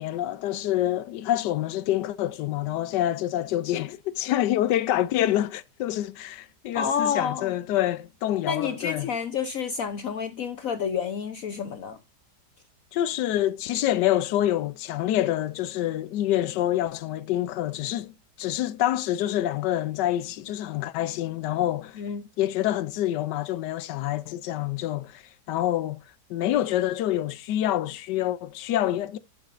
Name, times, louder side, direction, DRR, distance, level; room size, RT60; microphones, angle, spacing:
voice 1, 0.0-9.1 12.9-22.0 22.4-26.0 26.3-29.2, left 13 dB, 90° left, 1.3 m, -27 dB
voice 2, 6.7-7.5 8.4-12.0 22.0-22.2, left 7 dB, 60° left, 1.1 m, -29 dB
11.0 x 8.4 x 2.5 m
omnidirectional pair, 1.8 m